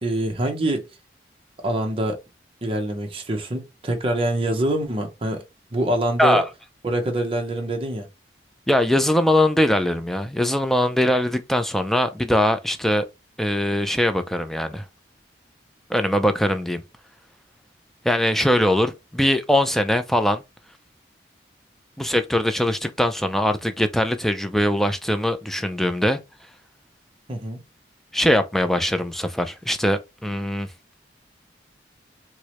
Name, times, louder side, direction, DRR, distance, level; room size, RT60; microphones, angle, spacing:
voice 1, 0.0-0.8 1.6-2.2 2.6-5.4 5.7-6.4 6.8-8.1 27.3-27.6, right 1 dB, 30° right, 0.6 m, -25 dB
voice 2, 8.7-13.1 13.4-14.8 15.9-16.8 18.0-20.4 22.0-26.2 28.1-30.7, left 1 dB, ahead, 0.3 m, -21 dB
4.6 x 2.0 x 2.9 m
head